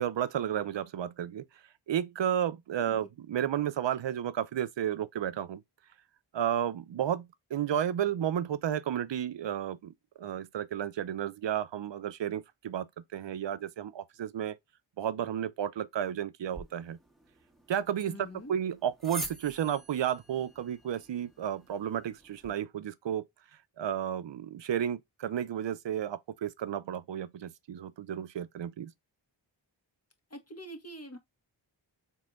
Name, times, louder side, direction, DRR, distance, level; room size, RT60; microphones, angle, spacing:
voice 1, 0.0-5.6 6.3-14.6 15.0-17.0 17.7-23.3 23.8-28.9, right 10 dB, 65° right, 0.6 m, -32 dB
sound 1, 16.5-22.5, right 1 dB, ahead, 1.4 m, -46 dB
voice 2, 18.1-18.5 30.3-31.2, equal, 30° left, 1.5 m, -44 dB
4.2 x 3.7 x 2.4 m
cardioid pair, 45°, 47 cm